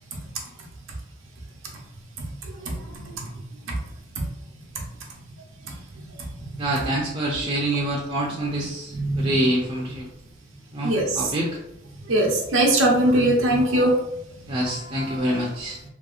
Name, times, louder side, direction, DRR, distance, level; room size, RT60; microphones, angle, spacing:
voice 1, 6.6-10.1 10.7-11.5 14.5-15.8, right 1 dB, 30° right, -4 dB, 0.4 m, -26 dB
voice 2, 8.9-9.4 10.8-11.2 12.1-13.9, right 1 dB, 85° right, 0 dB, 0.7 m, -20 dB
2.8 x 2.7 x 2.4 m, 0.82 s
head